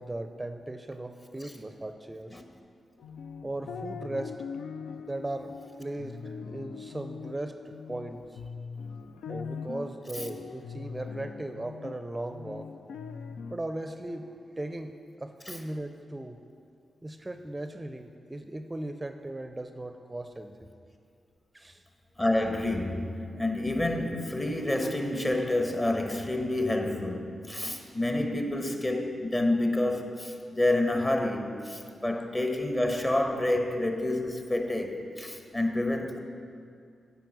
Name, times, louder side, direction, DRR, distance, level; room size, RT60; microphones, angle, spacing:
voice 1, 0.0-2.4 3.4-4.4 5.0-8.4 9.3-12.7 13.5-16.4 17.0-20.7 21.5-21.8 23.3-23.5, right 1 dB, 25° right, 0.5 m, -38 dB
sound 1, 3.0-13.5, left 5 dB, 80° left, 0.3 m, -41 dB
voice 2, 22.2-36.2, left 1 dB, 25° left, 1.2 m, -28 dB
9.0 x 5.1 x 6.3 m
supercardioid pair, 40°, 0 cm